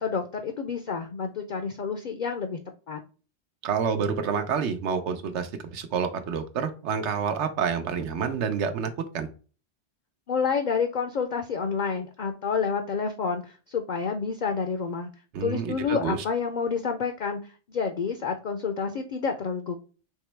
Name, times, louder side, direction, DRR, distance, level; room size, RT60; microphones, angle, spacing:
voice 1, 0.0-2.6 2.9-3.0 10.3-15.1 15.4-19.8, left 5 dB, 55° left, 6 dB, 0.5 m, -29 dB
voice 2, 3.6-9.3 15.3-16.2, right 6 dB, 85° right, 7 dB, 1.0 m, -28 dB
3.7 x 3.0 x 3.2 m, 0.36 s
omnidirectional pair, 1.1 m